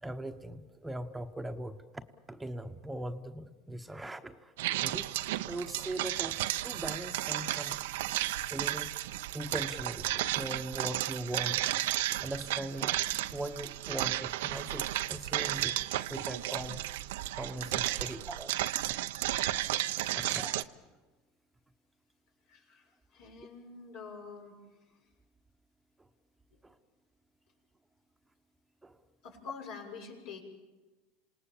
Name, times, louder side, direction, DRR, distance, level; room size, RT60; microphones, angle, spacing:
voice 1, 0.0-2.0 2.3-5.1 5.4-7.9 8.5-8.9 9.3-11.7 12.2-12.9 13.3-16.8 17.3-18.6 20.1-20.6 26.0-26.1 26.6-26.8 28.8-29.0, right 1 dB, 10° right, 7 dB, 1.1 m, -40 dB
sound 1, 4.6-20.6, right 15 dB, 80° right, 0.7 m, -33 dB
voice 2, 20.1-20.5 22.5-24.5 24.9-25.0 26.5-26.6 29.2-30.4, left 5 dB, 70° left, 0 dB, 6.8 m, -47 dB
27.5 x 18.5 x 7.4 m, 1.2 s
hypercardioid pair, 100°, 0 cm